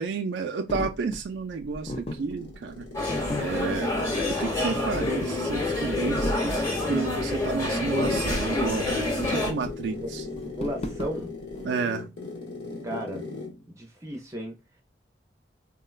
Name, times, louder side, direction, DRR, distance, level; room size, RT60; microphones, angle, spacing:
voice 1, 0.0-2.9 3.4-3.9 4.3-10.3 11.6-12.1, right 5 dB, 80° right, 0.4 m, -31 dB
sound 1, 0.7-11.6, left 1 dB, 35° left, 0.4 m, -35 dB
sound 2, 1.9-13.6, left 3 dB, 85° left, 1.1 m, -39 dB
sound 3, 2.9-9.5, left 2 dB, 15° left, 0.9 m, -27 dB
voice 2, 10.5-11.3 12.8-13.2 13.7-14.6, equal, 20° right, 0.5 m, -34 dB
3.7 x 2.1 x 2.3 m
head